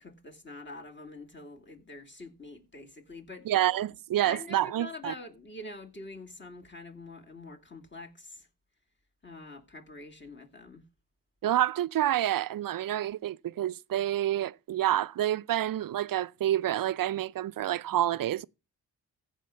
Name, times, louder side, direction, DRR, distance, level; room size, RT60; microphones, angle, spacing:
voice 1, 0.0-3.5 4.2-8.5 9.2-10.8, left 2 dB, 30° left, 2.5 m, -45 dB
voice 2, 3.4-5.1 11.4-18.5, right 12 dB, 60° right, 0.6 m, -28 dB
15.0 x 5.1 x 5.6 m
supercardioid pair, 50°, 39 cm